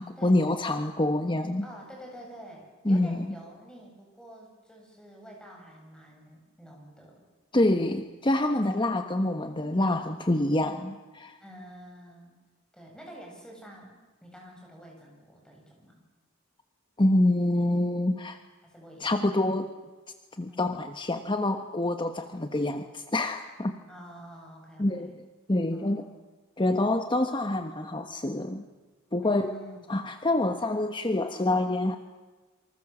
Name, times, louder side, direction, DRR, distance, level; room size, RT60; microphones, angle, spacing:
voice 1, 0.0-1.7 2.8-3.3 7.5-11.4 17.0-18.4 19.0-19.7 20.4-23.8 24.8-25.1 25.5-26.1 26.6-28.6 29.1-29.5 29.9-32.0, left 1 dB, 25° left, 7 dB, 1.2 m, -26 dB
voice 2, 1.6-7.2 11.4-12.4 12.7-16.0 18.6-19.2 20.5-20.7 23.9-25.2 25.7-26.1 29.2-29.9, right 1 dB, 5° left, -1 dB, 7.6 m, -48 dB
27.5 x 25.0 x 7.4 m, 1.3 s
head